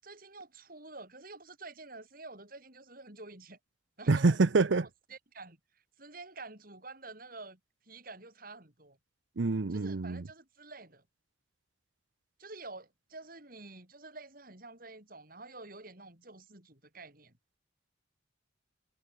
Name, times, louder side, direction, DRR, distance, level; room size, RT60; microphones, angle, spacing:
voice 1, 0.0-3.6 4.0-9.0 9.7-11.0 12.4-17.3, right 3 dB, 50° right, 7.8 m, -49 dB
voice 2, 4.1-4.9 9.4-10.2, right 3 dB, 80° right, 0.7 m, -26 dB
head